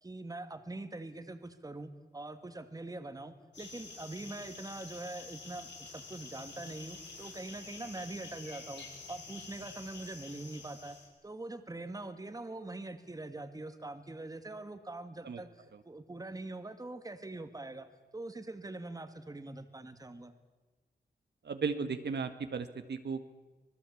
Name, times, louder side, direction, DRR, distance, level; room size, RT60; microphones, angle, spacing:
voice 1, 0.0-11.0 11.2-17.9 18.1-20.3, right 2 dB, 20° right, 9 dB, 2.0 m, -43 dB
sound 1, 3.5-11.1, left 4 dB, 90° left, 6.7 m, -48 dB
voice 2, 21.4-23.3, right 5 dB, 75° right, 8 dB, 1.7 m, -35 dB
25.5 x 20.0 x 8.5 m, 1.2 s
wide cardioid pair, 115°, 18 cm